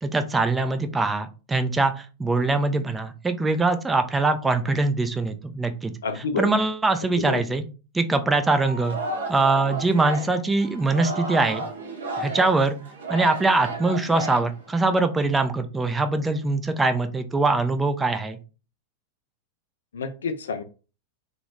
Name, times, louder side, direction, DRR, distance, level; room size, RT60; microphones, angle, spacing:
voice 1, 0.0-7.6 7.9-9.0 9.3-11.6 12.2-12.8 13.1-18.4, right 3 dB, 10° right, 8 dB, 0.4 m, -23 dB
voice 2, 6.0-6.5 7.3-7.4 19.9-20.6, left 4 dB, 65° left, 9 dB, 0.4 m, -28 dB
Singing, 8.5-15.0, right 2 dB, 65° right, 0.8 m, -33 dB
2.9 x 2.5 x 3.1 m, 0.33 s
figure-of-eight pair, 90°, 0 cm